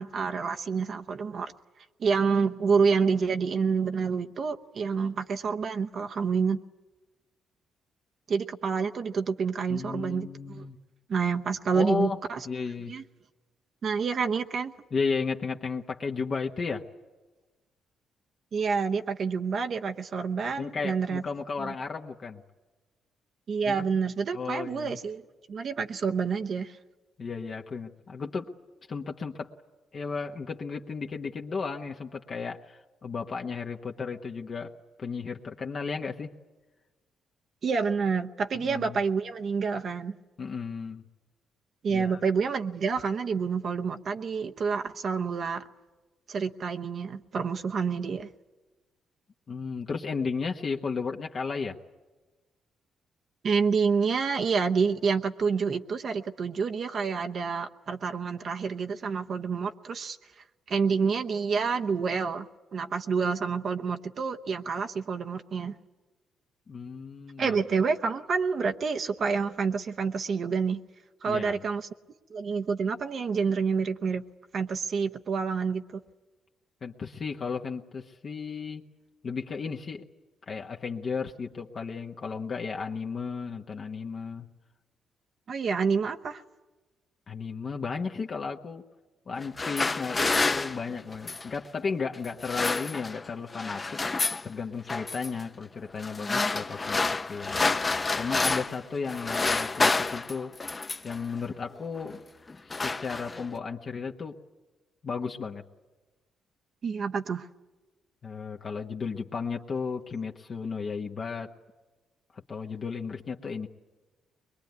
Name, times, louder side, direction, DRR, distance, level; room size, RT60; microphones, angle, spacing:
voice 1, 0.0-1.5 2.0-6.6 8.3-10.7 11.1-12.4 12.9-13.0 13.8-14.7 18.5-21.2 21.6-21.7 23.5-25.2 25.5-26.8 37.6-40.1 41.8-45.6 46.3-48.3 53.4-60.2 60.7-65.7 67.4-70.8 71.2-71.9 72.3-74.2 74.5-76.0 85.5-86.4 106.8-107.5, right 5 dB, 55° right, 5 dB, 0.9 m, -28 dB
voice 2, 9.7-10.8 11.7-12.2 12.4-13.0 14.9-16.8 20.6-22.4 23.6-23.9 24.3-25.0 27.2-28.5 28.9-29.5 29.9-34.7 35.0-36.3 38.5-39.0 40.4-41.0 41.9-42.2 49.5-51.8 66.7-67.6 71.3-71.6 76.8-78.8 79.2-80.0 80.5-84.5 87.3-88.8 89.3-94.0 94.4-97.0 97.3-100.5 101.0-102.2 102.6-104.4 105.0-105.6 108.2-111.5 112.3-113.7, left 5 dB, 45° left, 2 dB, 1.1 m, -34 dB
sound 1, 89.4-91.6 92.3-93.3 93.5-94.5 94.9-95.3 96.0-98.8 99.1-101.2 102.0-102.2 102.5-103.6, left 3 dB, 25° left, 0.7 m, -29 dB
22.5 x 22.0 x 9.5 m, 1.2 s
cardioid pair, 90°, 0 cm